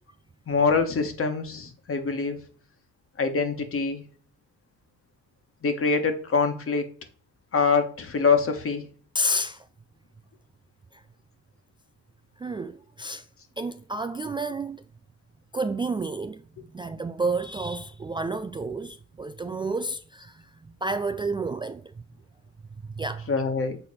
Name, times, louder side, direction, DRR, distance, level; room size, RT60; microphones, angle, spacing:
voice 1, 0.5-2.4 3.2-4.0 5.6-6.8 7.5-8.8 23.3-23.8, left 4 dB, 45° left, 1.5 m, -24 dB
voice 2, 9.1-9.6 10.9-11.0 12.4-13.2 13.6-14.8 15.5-16.4 16.7-20.4 20.8-21.8 22.9-23.3, right 2 dB, 15° right, 0.3 m, -30 dB
6.6 x 4.1 x 4.1 m
cardioid pair, 90°, 30 cm